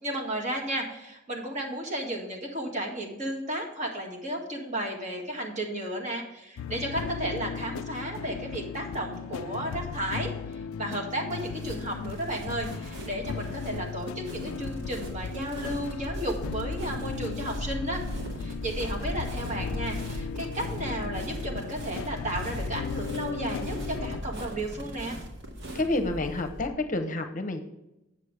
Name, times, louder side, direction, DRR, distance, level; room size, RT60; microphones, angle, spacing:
voice 1, 0.0-18.0 18.4-25.2, right 1 dB, 35° right, 0 dB, 2.0 m, -33 dB
sound 1, 6.6-24.2, left 6 dB, 85° left, 0.3 m, -37 dB
sound 2, 11.3-26.7, equal, 60° right, 1.9 m, -38 dB
voice 2, 25.7-27.6, left 2 dB, 40° left, 7 dB, 0.8 m, -29 dB
8.4 x 7.1 x 4.8 m, 0.94 s
head